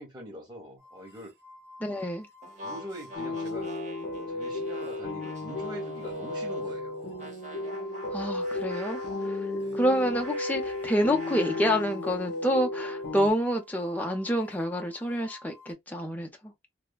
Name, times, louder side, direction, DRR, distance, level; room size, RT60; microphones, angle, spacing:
voice 1, 0.0-1.3 2.6-3.7 4.3-7.3 9.4-9.8, equal, 25° right, 1.1 m, -43 dB
sound 1, 0.8-15.7, left 2 dB, 90° right, 1.0 m, -51 dB
voice 2, 1.8-2.3 8.1-9.5 9.7-16.5, equal, 10° left, 0.6 m, -28 dB
sound 2, 2.4-6.8 7.2-12.0, equal, 40° right, 0.8 m, -42 dB
sound 3, 3.1-13.3, left 2 dB, 65° left, 0.6 m, -34 dB
3.3 x 2.1 x 2.2 m
head